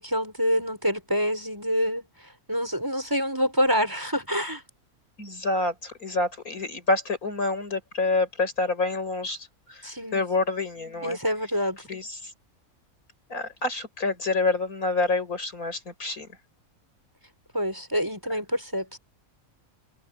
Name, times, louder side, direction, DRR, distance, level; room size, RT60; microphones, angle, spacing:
voice 1, 0.0-2.1 2.5-4.6 9.8-10.2 11.0-11.8 17.5-19.0, equal, 15° right, 6.6 m, -26 dB
voice 2, 5.2-11.2 11.9-12.3 13.3-16.3, left 3 dB, 80° left, 6.3 m, -27 dB
omnidirectional pair, 1.5 m